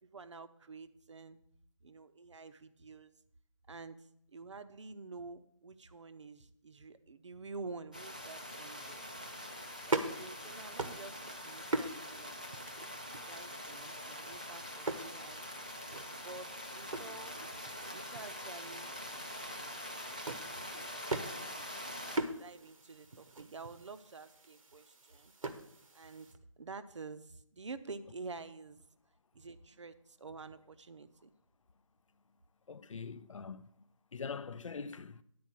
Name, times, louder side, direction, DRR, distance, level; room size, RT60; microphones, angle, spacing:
voice 1, 0.0-1.4 1.8-3.1 3.7-9.0 9.9-12.3 13.3-15.5 16.2-17.4 17.9-18.9 20.5-21.7 22.1-25.3 25.9-28.8 29.3-31.3, right 4 dB, 60° right, 0.7 m, -49 dB
sound 1, 7.9-22.2, equal, 15° right, 0.4 m, -44 dB
sound 2, 8.8-26.4, right 2 dB, 85° right, 1.1 m, -43 dB
voice 2, 32.7-33.7 34.1-35.2, left 5 dB, 70° left, 0.5 m, -43 dB
10.5 x 4.6 x 7.4 m
figure-of-eight pair, 175°, 17 cm